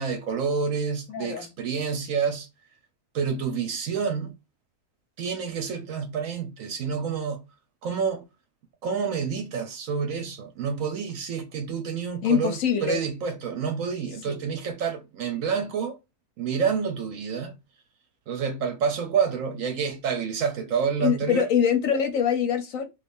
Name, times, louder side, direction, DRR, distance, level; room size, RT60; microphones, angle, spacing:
voice 1, 0.0-2.5 3.1-4.3 5.2-7.4 7.8-8.2 8.8-16.0 16.4-17.5 18.3-21.4, right 6 dB, 65° right, 0.9 m, -28 dB
voice 2, 1.1-1.5 12.2-13.0 14.3-14.4 21.0-22.8, left 8 dB, 65° left, 0.9 m, -24 dB
3.1 x 2.4 x 3.4 m
omnidirectional pair, 1.7 m